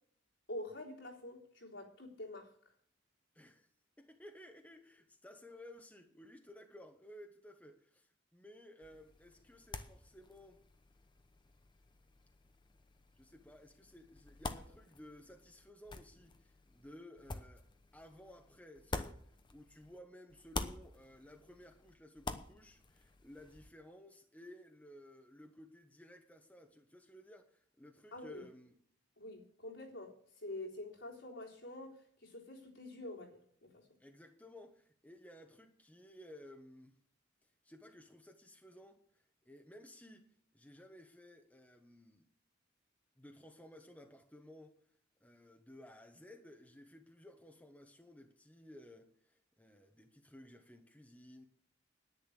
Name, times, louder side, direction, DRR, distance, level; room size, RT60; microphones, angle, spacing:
voice 1, 0.5-2.5 28.1-28.4 29.2-32.0 32.2-33.8, left 1 dB, 75° left, 3.8 m, -47 dB
voice 2, 3.3-3.7 4.0-10.6 13.2-17.6 17.9-28.8 34.0-37.0 37.6-40.3 40.5-42.3 43.2-44.8 45.2-51.4, left 1 dB, 10° left, 1.2 m, -56 dB
sound 1, 8.8-20.0 20.3-23.7, left 3 dB, 25° left, 0.8 m, -48 dB
10.5 x 10.5 x 6.7 m
head